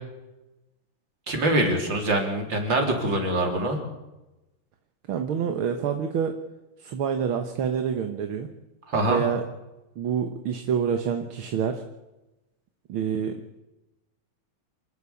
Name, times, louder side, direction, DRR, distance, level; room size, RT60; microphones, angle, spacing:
voice 1, 1.3-3.8 8.9-9.2, right 1 dB, 65° right, 3 dB, 4.2 m, -24 dB
voice 2, 5.1-6.3 6.8-8.5 9.1-9.4 10.0-11.8 12.9-13.4, right 7 dB, 80° right, 6 dB, 2.1 m, -27 dB
27.5 x 11.5 x 8.5 m, 1.0 s
omnidirectional pair, 2.2 m